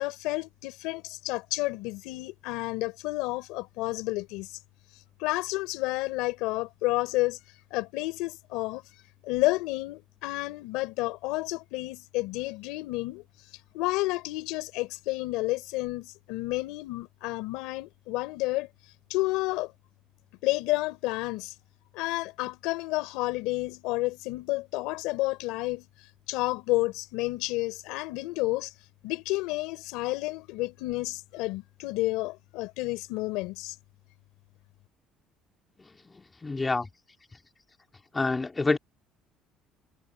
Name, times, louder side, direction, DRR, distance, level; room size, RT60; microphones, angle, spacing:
voice 1, 0.0-4.6 5.2-7.4 7.7-8.8 9.2-13.2 13.7-18.7 19.1-19.7 20.4-21.5 21.9-25.9 26.3-28.7 29.0-33.7, left 20 dB, 85° left, 3.3 m, -30 dB
voice 2, 36.4-36.9 38.1-38.8, left 3 dB, 20° left, 2.8 m, -26 dB
cardioid pair, 115°, 0 cm